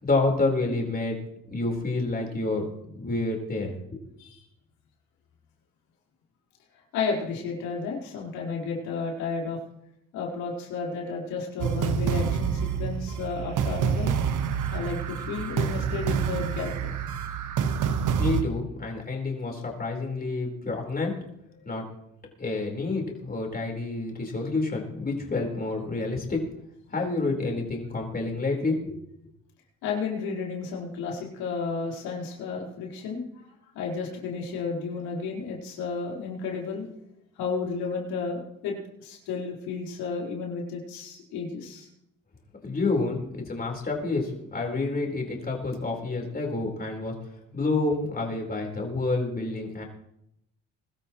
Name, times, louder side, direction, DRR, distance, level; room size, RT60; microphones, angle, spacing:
voice 1, 0.0-1.2 1.5-3.7 18.2-21.1 21.6-21.9 22.4-26.4 26.9-29.0 42.6-47.1 47.5-49.8, left 3 dB, 25° left, 0 dB, 4.5 m, -28 dB
voice 2, 6.9-9.6 10.1-14.1 14.7-16.7 29.8-33.2 33.7-36.9 37.4-41.9, left 5 dB, 90° left, -3 dB, 4.5 m, -32 dB
sound 1, 11.6-18.4, right 7 dB, 60° right, 1.4 m, -27 dB
23.0 x 13.0 x 3.2 m, 0.79 s
cardioid pair, 90°, 34 cm